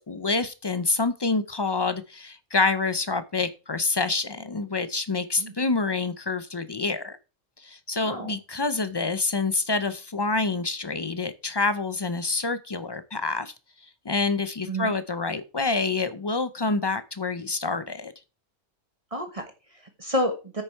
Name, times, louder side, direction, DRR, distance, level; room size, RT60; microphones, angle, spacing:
voice 1, 0.1-7.2 7.6-13.5 14.0-18.1, left 3 dB, 40° left, 13 dB, 0.3 m, -27 dB
voice 2, 8.0-8.3 14.7-14.9 19.1-20.6, equal, 30° right, 5 dB, 1.3 m, -30 dB
8.9 x 6.6 x 4.5 m, 0.31 s
omnidirectional pair, 1.3 m